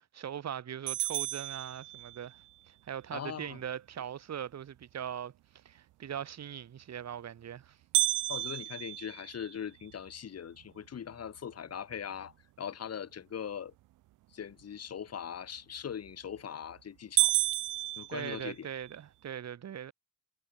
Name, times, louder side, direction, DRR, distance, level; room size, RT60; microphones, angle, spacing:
voice 1, 0.1-2.4 2.9-5.3 5.7-7.8 18.1-19.9, right 9 dB, 60° right, 5.4 m, -40 dB
sound 1, 0.9-2.4 7.9-10.1 10.6-10.7 11.2-11.3 12.0-12.3 15.9-16.3 16.7-16.8 17.2-18.9, right 17 dB, 85° right, 1.2 m, -31 dB
voice 2, 3.1-3.6 8.3-12.3 12.6-13.7 14.3-17.3 18.0-18.7, left 8 dB, 55° left, 7.6 m, -41 dB
cardioid pair, 90°, 30 cm